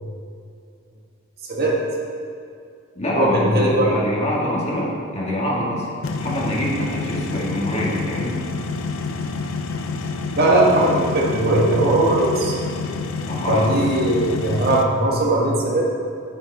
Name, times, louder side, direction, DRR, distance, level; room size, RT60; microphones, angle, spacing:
voice 1, 1.4-1.8 3.2-3.9 9.3-9.4 10.3-12.6 13.5-15.8, right 1 dB, 50° right, -3 dB, 1.7 m, -19 dB
voice 2, 3.0-5.9 6.2-8.5 13.3-13.9, equal, 35° left, -5 dB, 2.2 m, -25 dB
sound 1, 6.0-14.8, left 4 dB, 80° left, 0.7 m, -28 dB
11.0 x 9.5 x 3.6 m, 2.4 s
head